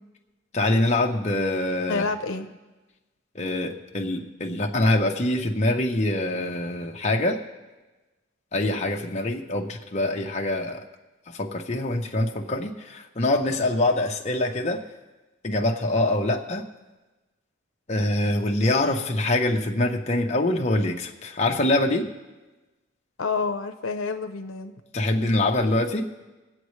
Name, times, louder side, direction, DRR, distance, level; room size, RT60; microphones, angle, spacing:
voice 1, 0.5-2.0 3.3-7.4 8.5-10.8 11.3-14.8 15.4-16.6 17.9-22.1 24.9-26.1, left 1 dB, 35° left, 1 dB, 0.9 m, -24 dB
voice 2, 1.9-2.5 23.2-24.7, left 4 dB, 80° left, 6 dB, 0.7 m, -28 dB
24.5 x 8.2 x 3.2 m, 1.2 s
head